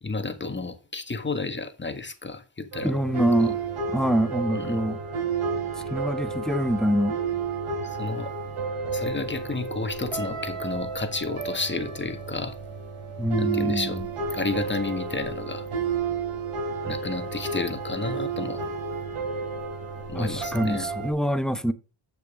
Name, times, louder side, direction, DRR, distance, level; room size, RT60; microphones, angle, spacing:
voice 1, 0.0-2.9 3.4-3.5 4.5-4.8 7.8-8.3 8.9-12.6 13.4-14.0 14.3-15.7 16.8-18.7 20.1-20.9, left 3 dB, 20° left, 1.6 m, -31 dB
sound 1, 2.7-21.1, right 5 dB, 85° right, 3.3 m, -31 dB
voice 2, 2.8-3.6 3.9-5.0 5.9-7.2 13.2-14.1 20.1-21.7, equal, ahead, 1.0 m, -25 dB
7.8 x 6.7 x 3.7 m
cardioid pair, 65°, 50 cm